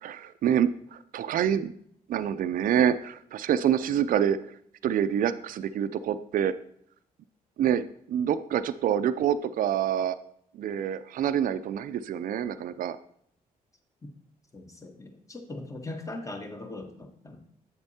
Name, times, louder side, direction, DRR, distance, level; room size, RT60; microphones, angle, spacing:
voice 1, 0.0-1.7 2.1-4.4 4.8-6.5 7.6-10.2 10.5-13.0, right 9 dB, 60° right, 12 dB, 0.4 m, -26 dB
voice 2, 14.5-17.4, left 2 dB, 20° left, 5 dB, 1.1 m, -40 dB
7.9 x 7.0 x 2.8 m, 0.66 s
supercardioid pair, 60°, 16 cm